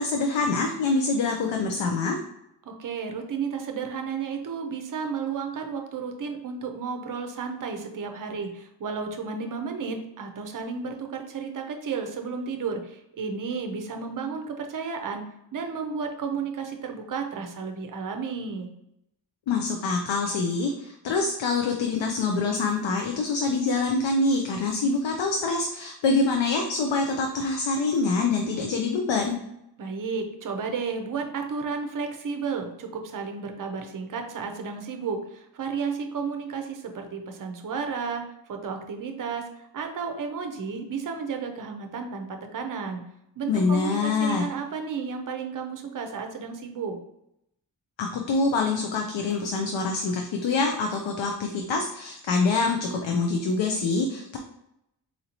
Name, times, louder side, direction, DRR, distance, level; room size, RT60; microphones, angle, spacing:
voice 1, 0.0-2.2 19.5-29.4 43.5-44.4 48.0-54.4, left 3 dB, 80° left, 2 dB, 0.5 m, -25 dB
voice 2, 2.6-15.2 15.5-18.7 29.8-43.0 43.4-47.0, right 5 dB, 45° right, 4 dB, 0.5 m, -32 dB
4.2 x 2.7 x 2.8 m, 0.81 s
wide cardioid pair, 165°, 44 cm